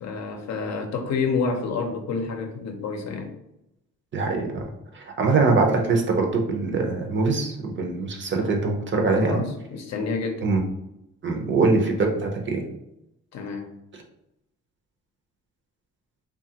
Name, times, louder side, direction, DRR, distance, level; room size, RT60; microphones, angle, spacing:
voice 1, 0.0-3.3 9.1-10.5 13.3-13.7, left 4 dB, 60° left, 4 dB, 0.6 m, -29 dB
voice 2, 4.1-4.6 4.9-9.4 10.4-10.6 11.2-12.6, right 3 dB, 40° right, 2 dB, 0.6 m, -23 dB
2.9 x 2.4 x 2.8 m, 0.85 s
cardioid pair, 90°, 30 cm